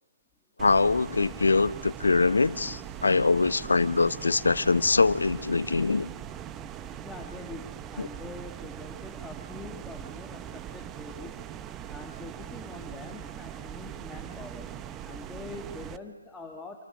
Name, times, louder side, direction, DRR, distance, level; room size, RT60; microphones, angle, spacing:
voice 1, 0.6-6.1 8.0-8.1, left 3 dB, 75° left, 15 dB, 0.9 m, -23 dB
sound 1, 0.6-16.0, right 10 dB, 15° right, 0.7 m, -41 dB
voice 2, 7.0-11.4 11.9-14.7 15.0-16.9, left 2 dB, 5° left, 1 dB, 1.5 m, -44 dB
27.0 x 26.5 x 6.6 m, 1.4 s
figure-of-eight pair, 145°, 0 cm